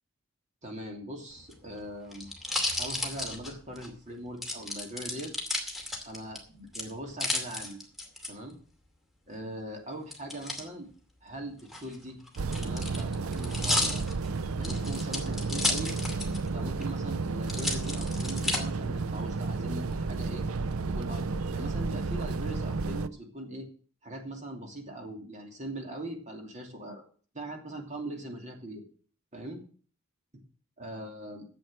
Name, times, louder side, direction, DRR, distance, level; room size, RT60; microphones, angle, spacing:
voice 1, 0.6-2.3 2.8-5.3 6.0-7.8 8.3-8.6 9.3-10.9 11.2-12.2 12.6-14.0 14.6-15.9 16.5-20.4 20.9-23.7 24.0-27.0 27.3-28.8 29.3-29.6 30.8-31.4, right 1 dB, 35° right, 3 dB, 2.8 m, -41 dB
sound 1, 1.4-3.9 4.4-6.4 6.7-8.3 10.1-10.6 11.6-16.5 16.8-16.9 17.5-18.6 19.2-19.8, left 2 dB, ahead, 2.4 m, -33 dB
sound 2, 12.4-23.1, right 3 dB, 85° right, 0.6 m, -32 dB
10.5 x 7.8 x 7.5 m, 0.43 s
head